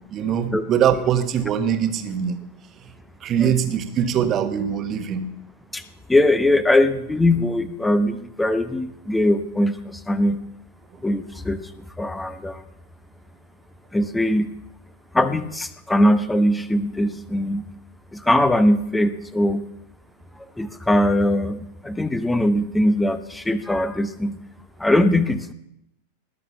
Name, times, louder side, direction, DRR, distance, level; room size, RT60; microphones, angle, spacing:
voice 1, 0.1-2.4 3.2-5.3, right 8 dB, 30° right, 9 dB, 1.4 m, -22 dB
voice 2, 6.1-10.4 11.0-11.7 12.0-12.6 13.9-14.5 15.1-17.7 18.1-19.6 20.6-24.4 24.8-25.5, left 1 dB, 5° left, 12 dB, 0.9 m, -21 dB
19.5 x 6.8 x 7.0 m, 0.80 s
figure-of-eight pair, 90°, 0 cm